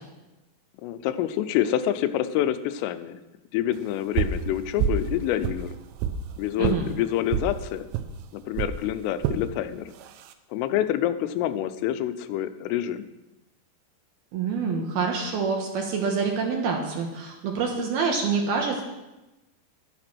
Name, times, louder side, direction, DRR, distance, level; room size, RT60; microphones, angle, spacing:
voice 1, 0.8-3.2 3.5-5.8 6.4-7.9 8.3-9.9 10.5-13.1, left 12 dB, 85° left, 12 dB, 3.3 m, -27 dB
sound 1, 4.2-4.4 4.8-5.1 5.4-6.2 6.6-6.8 7.3-7.5 7.9-8.1 8.6-8.8 9.2-9.4 10.0-10.3, right 8 dB, 85° right, 3.5 m, -26 dB
voice 2, 14.3-18.8, right 5 dB, 65° right, 1 dB, 2.7 m, -26 dB
12.0 x 11.0 x 6.1 m, 1.0 s
omnidirectional pair, 5.8 m